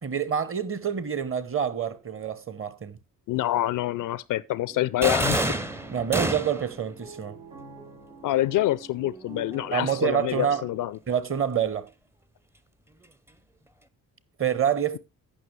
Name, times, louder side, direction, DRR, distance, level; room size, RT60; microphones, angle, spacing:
voice 1, 0.0-3.0 5.9-7.4 9.7-10.6 11.1-11.9 14.4-15.0, right 8 dB, 30° right, 0.9 m, -27 dB
voice 2, 3.3-5.4 8.2-11.0, left 14 dB, 45° left, 0.5 m, -26 dB
sound 1, 4.7-10.9, right 3 dB, 85° right, 2.8 m, -45 dB
sound 2, 5.0-6.8, right 1 dB, 5° right, 0.6 m, -27 dB
16.0 x 6.0 x 3.2 m
figure-of-eight pair, 40°, 45 cm